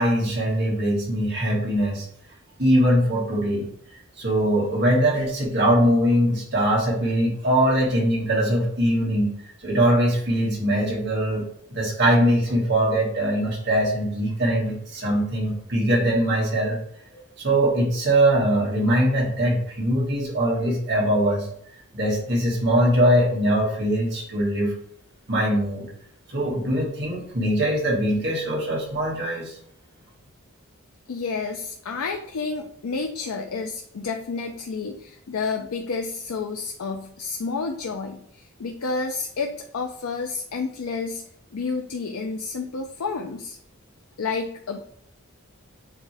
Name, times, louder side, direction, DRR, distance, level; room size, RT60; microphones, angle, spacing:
voice 1, 0.0-2.1 2.6-3.7 4.2-9.3 9.6-16.8 17.1-21.5 21.9-24.7 25.3-25.9 26.3-29.6, right 1 dB, 50° right, -4 dB, 2.1 m, -22 dB
voice 2, 31.1-43.6 44.2-44.8, left 4 dB, 85° left, 4 dB, 0.5 m, -30 dB
7.7 x 3.6 x 3.4 m, 0.67 s
head